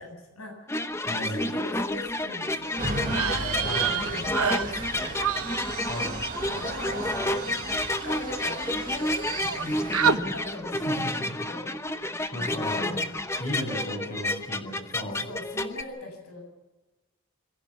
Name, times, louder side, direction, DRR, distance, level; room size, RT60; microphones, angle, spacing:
voice 1, 0.0-5.3 6.5-7.4 8.0-11.2 11.5-11.7 12.9-13.1 13.3-14.1 15.0-16.4, left 2 dB, 80° left, 3 dB, 7.8 m, -41 dB
sound 1, 0.7-15.8, left 1 dB, 10° left, 0.8 m, -30 dB
voice 2, 1.1-1.5 3.6-4.0 5.9-6.1 10.8-11.1 12.0-13.0 13.4-15.3, equal, 35° left, 2 dB, 6.6 m, -35 dB
sound 2, 2.8-10.1, right 2 dB, 40° right, 1.9 m, -37 dB
sound 3, 3.1-8.7 8.9-9.6 9.9-10.2, right 7 dB, 75° right, 1.2 m, -30 dB
26.0 x 16.5 x 7.2 m, 1.1 s
head